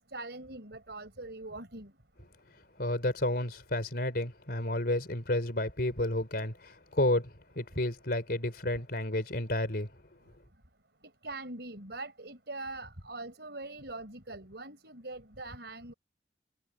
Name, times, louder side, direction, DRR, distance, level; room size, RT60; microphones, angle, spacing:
voice 1, 0.1-1.9 11.2-15.9, right 2 dB, 70° right, 5.5 m, -42 dB
voice 2, 2.8-9.9, left 1 dB, 60° left, 4.3 m, -31 dB
head